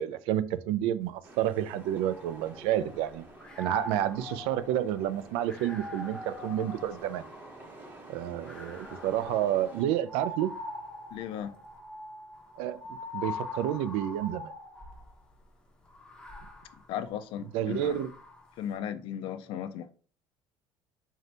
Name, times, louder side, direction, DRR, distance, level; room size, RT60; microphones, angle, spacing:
voice 1, 0.0-3.2 3.6-7.2 8.1-10.5 12.6-14.5 17.5-18.1, right 11 dB, 85° right, 0.4 m, -30 dB
sound 1, 1.2-9.8, right 2 dB, 20° right, 0.8 m, -50 dB
sound 2, 1.8-3.0 3.4-7.7 8.4-15.1 15.9-18.5, left 2 dB, 10° left, 0.6 m, -43 dB
voice 2, 11.1-11.6 16.9-18.0 18.6-19.9, left 9 dB, 65° left, 0.4 m, -36 dB
3.8 x 2.7 x 3.3 m
cardioid pair, 155°, 9 cm